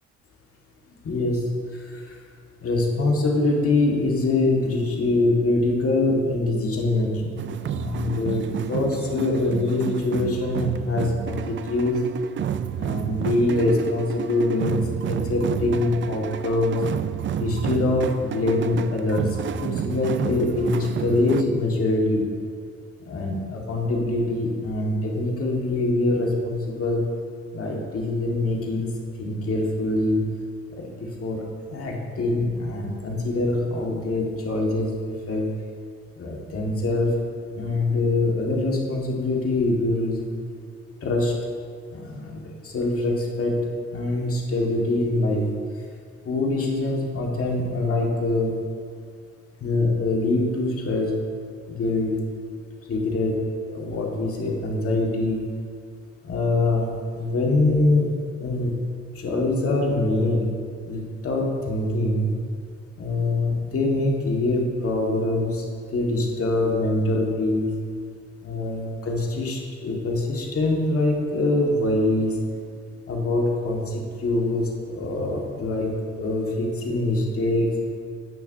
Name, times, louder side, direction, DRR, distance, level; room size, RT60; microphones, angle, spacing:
voice 1, 1.0-2.2 2.6-7.3 7.6-12.1 12.8-16.8 17.4-22.3 23.1-27.0 27.5-28.9 29.2-30.3 30.7-31.5 31.7-34.9 35.3-35.5 36.2-37.1 37.6-40.3 41.0-41.3 41.9-43.6 43.9-45.5 46.2-48.6 49.6-51.1 51.7-52.2 52.9-55.4 56.2-58.1 58.4-58.7 59.2-60.5 60.9-62.3 63.0-65.7 65.9-67.7 68.4-72.4 73.1-77.8, left 2 dB, 50° left, -1 dB, 1.8 m, -24 dB
sound 1, 7.4-21.4, right 9 dB, 40° right, 0.4 m, -30 dB
16.5 x 5.9 x 2.7 m, 2.1 s
cardioid pair, 90°, 30 cm